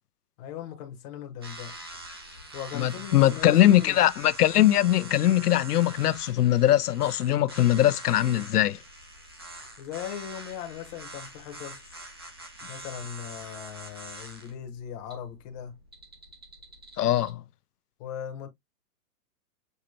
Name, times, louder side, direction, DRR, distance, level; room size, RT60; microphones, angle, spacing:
voice 1, 0.4-1.7 2.5-4.0 9.8-11.8 12.7-15.8 18.0-18.5, left 9 dB, 30° left, 0.9 m, -39 dB
sound 1, 1.4-17.3, right 2 dB, 20° right, 0.3 m, -44 dB
voice 2, 2.7-8.8 17.0-17.4, left 13 dB, 80° left, 0.7 m, -21 dB
6.5 x 2.8 x 2.8 m
hypercardioid pair, 140°, 46 cm